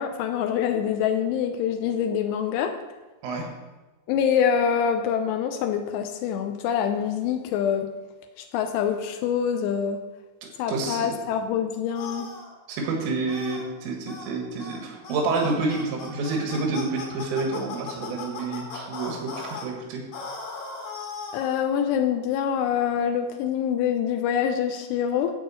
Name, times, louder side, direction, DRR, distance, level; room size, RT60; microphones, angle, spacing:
voice 1, 0.0-2.7 4.1-7.9 8.4-10.0 10.6-12.3 21.3-25.3, left 8 dB, 90° left, 5 dB, 2.5 m, -25 dB
voice 2, 10.7-11.1 12.7-20.0, right 3 dB, 80° right, 0 dB, 4.3 m, -28 dB
sound 1, 11.9-12.5 13.3-13.6 14.1-14.3 14.6-14.8 15.0-19.7 20.1-21.6, left 4 dB, 55° left, 3.3 m, -37 dB
13.0 x 4.9 x 7.8 m, 1.2 s
omnidirectional pair, 5.8 m